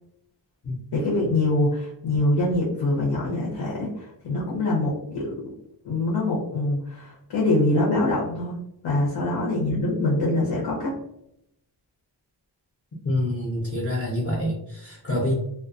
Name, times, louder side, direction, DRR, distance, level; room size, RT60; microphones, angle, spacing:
voice 1, 0.9-5.3 5.8-8.5 8.8-10.9, left 2 dB, 80° left, -5 dB, 0.8 m, -24 dB
voice 2, 13.0-15.3, left 1 dB, 30° left, -5 dB, 0.6 m, -26 dB
2.3 x 2.2 x 2.4 m, 0.78 s
wide cardioid pair, 150°, 42 cm